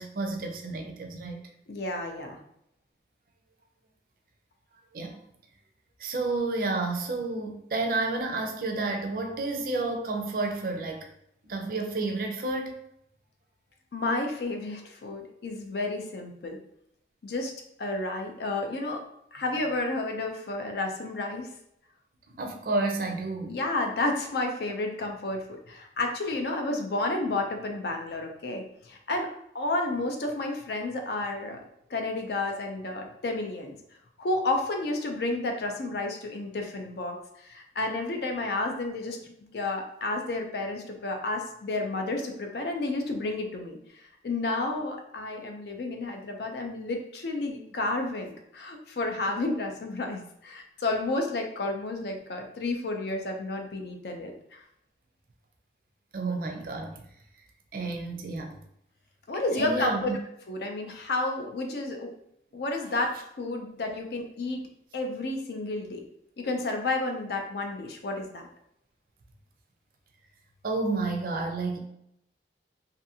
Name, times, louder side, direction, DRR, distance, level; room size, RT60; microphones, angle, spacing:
voice 1, 0.0-1.4 4.9-5.2 6.0-11.1 11.5-12.8 22.3-23.6 56.1-57.0 57.7-58.6 59.5-60.2 70.6-71.8, right 3 dB, 50° right, 3 dB, 0.4 m, -30 dB
voice 2, 1.7-2.4 13.9-16.6 17.2-17.5 17.8-19.0 19.3-21.5 23.5-29.3 29.5-31.6 31.9-33.7 34.2-37.2 37.4-39.2 39.5-54.6 59.3-60.1 60.5-62.1 62.5-63.1 63.4-64.6 64.9-66.0 66.4-68.5, left 2 dB, 65° left, 3 dB, 0.5 m, -31 dB
2.5 x 2.5 x 2.7 m, 0.76 s
head